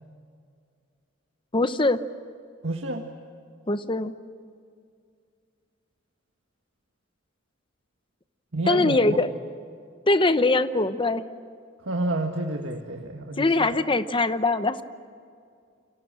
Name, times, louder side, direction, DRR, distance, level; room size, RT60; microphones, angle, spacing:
voice 1, 1.5-2.0 3.7-4.1 8.7-9.3 10.1-11.2 13.4-14.8, left 2 dB, 25° left, 11 dB, 0.9 m, -22 dB
voice 2, 2.6-3.1 8.5-9.2 11.8-13.8, right 2 dB, 75° right, 2 dB, 1.8 m, -29 dB
29.5 x 26.5 x 7.5 m, 2.3 s
head